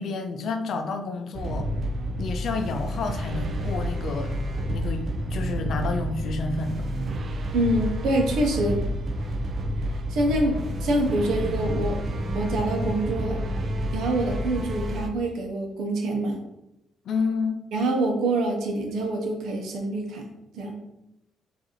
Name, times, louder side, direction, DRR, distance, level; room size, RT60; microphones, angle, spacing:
voice 1, 0.0-1.7 2.2-4.3 4.7-6.8 17.1-17.6, left 4 dB, 65° left, 6 dB, 0.5 m, -30 dB
sound 1, 1.3-15.1, equal, 50° right, 0.5 m, -29 dB
voice 2, 7.5-8.9 10.1-12.0 12.3-13.4 13.9-16.4 17.7-20.2 20.5-20.7, right 1 dB, 80° right, 2 dB, 0.8 m, -25 dB
4.7 x 2.6 x 3.0 m, 0.89 s
cardioid pair, 90°, 0 cm